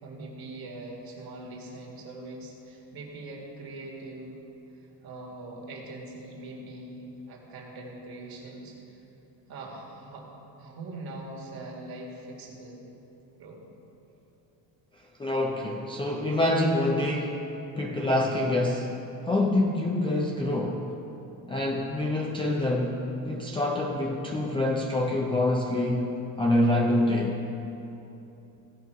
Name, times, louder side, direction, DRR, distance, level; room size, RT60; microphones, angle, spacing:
voice 1, 0.0-4.4 5.0-9.0 9.5-10.3 10.6-12.9 13.4-13.6, right 2 dB, 50° right, -2 dB, 2.0 m, -42 dB
voice 2, 15.2-17.5 17.8-19.0 19.2-20.9 21.5-27.4, left 1 dB, 10° left, -2 dB, 0.4 m, -26 dB
16.0 x 5.5 x 4.7 m, 3.0 s
cardioid pair, 165°, 47 cm